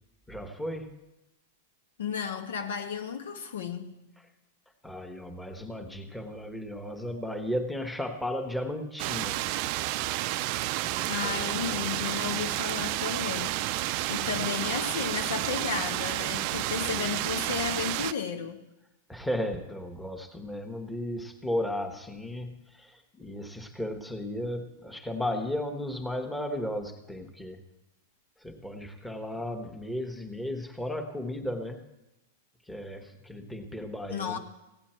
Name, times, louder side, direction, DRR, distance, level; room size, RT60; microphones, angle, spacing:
voice 1, 0.3-0.9 4.8-9.4 10.6-11.9 19.1-27.6 28.4-31.8 32.7-34.4, left 1 dB, 5° left, 1.3 m, -35 dB
voice 2, 2.0-3.9 11.1-13.6 14.1-18.6 34.1-34.4, left 7 dB, 80° left, 1.2 m, -33 dB
sound 1, 9.0-18.1, right 16 dB, 50° right, 0.4 m, -30 dB
16.0 x 9.2 x 4.4 m
hypercardioid pair, 120°, 0 cm